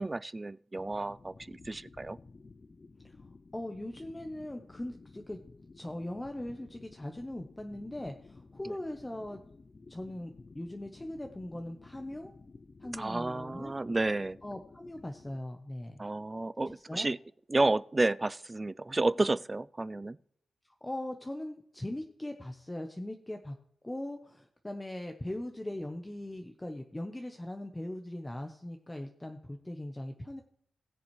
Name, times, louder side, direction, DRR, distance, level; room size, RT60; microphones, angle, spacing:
voice 1, 0.0-2.2 12.9-14.4 16.0-17.2 17.5-20.2, right 2 dB, 20° right, 0.3 m, -31 dB
sound 1, 0.7-15.4, left 3 dB, 35° left, 0.5 m, -54 dB
voice 2, 3.5-5.4 5.7-9.4 9.9-12.3 12.8-13.7 14.4-16.0 16.6-17.1 20.8-23.6 23.8-30.4, left 1 dB, 15° left, 0.9 m, -40 dB
20.5 x 6.9 x 3.2 m
wide cardioid pair, 110°, 0 cm